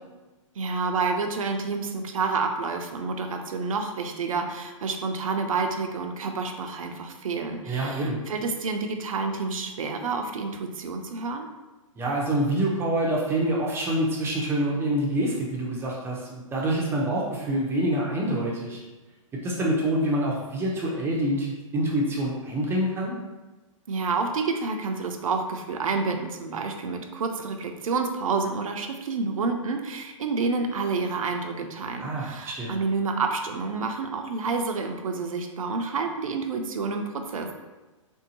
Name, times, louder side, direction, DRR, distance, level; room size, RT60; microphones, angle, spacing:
voice 1, 0.6-11.5 23.9-37.5, right 4 dB, 80° right, 5 dB, 0.5 m, -29 dB
voice 2, 7.6-8.2 12.0-18.8 19.4-23.1 32.0-32.8, right 1 dB, 15° right, -3 dB, 0.5 m, -26 dB
3.5 x 2.7 x 2.7 m, 1.2 s
hypercardioid pair, 130°, 17 cm